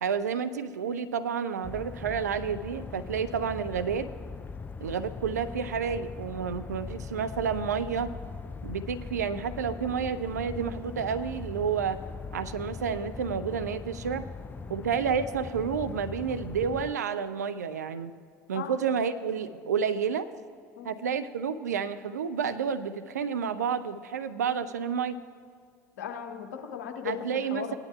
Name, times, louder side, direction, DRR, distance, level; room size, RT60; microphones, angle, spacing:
voice 1, 0.0-4.1 4.8-8.1 8.6-12.0 12.3-14.3 14.7-18.1 18.5-20.3 20.8-25.2 27.0-27.8, right 6 dB, 80° right, 11 dB, 0.4 m, -30 dB
sound 1, 1.6-16.9, left 4 dB, 20° left, 0.4 m, -40 dB
voice 2, 26.0-27.8, left 8 dB, 70° left, 4 dB, 0.9 m, -37 dB
17.5 x 10.5 x 2.3 m, 2.1 s
figure-of-eight pair, 60°, 9 cm